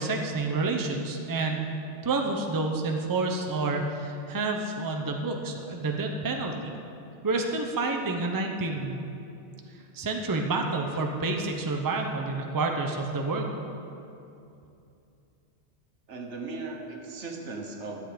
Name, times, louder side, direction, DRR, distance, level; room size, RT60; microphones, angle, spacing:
voice 1, 0.0-1.7 2.0-6.7 7.2-9.0 9.9-13.5, right 3 dB, 20° right, 2 dB, 0.7 m, -29 dB
voice 2, 16.1-18.0, right 3 dB, 75° right, 2 dB, 1.4 m, -37 dB
11.5 x 7.9 x 5.1 m, 2.7 s
omnidirectional pair, 1.2 m